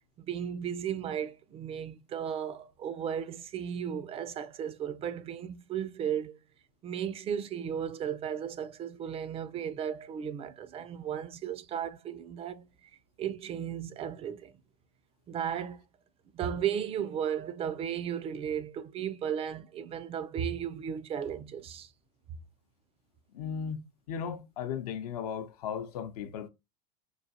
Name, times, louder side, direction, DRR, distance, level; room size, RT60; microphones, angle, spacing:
voice 1, 0.2-6.4 6.8-12.9 13.2-14.5 15.3-15.8 16.3-21.9, right 8 dB, 30° right, 0.4 m, -35 dB
voice 2, 23.3-26.5, left 7 dB, 70° left, 0.6 m, -36 dB
4.6 x 2.3 x 2.7 m
hypercardioid pair, 100°, 20 cm